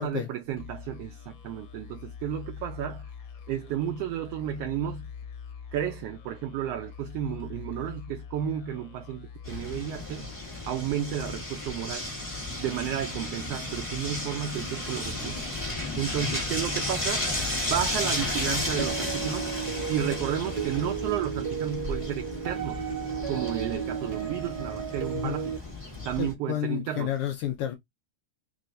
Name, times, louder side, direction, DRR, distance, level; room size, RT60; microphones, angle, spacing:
voice 1, 0.0-3.1 3.5-5.1 5.7-10.3 10.7-12.1 12.6-15.4 16.0-17.2 17.7-19.5 19.9-22.9 23.3-25.6 26.0-27.1, right 10 dB, 80° right, 1.4 m, -32 dB
sound 1, 0.6-10.9, left 7 dB, 60° left, 1.2 m, -44 dB
sound 2, 9.4-26.3, left 1 dB, 20° left, 0.8 m, -33 dB
sound 3, 18.8-25.6, right 8 dB, 45° right, 1.4 m, -34 dB
voice 2, 26.2-27.7, left 11 dB, 85° left, 1.2 m, -31 dB
4.5 x 3.2 x 2.6 m
omnidirectional pair, 3.3 m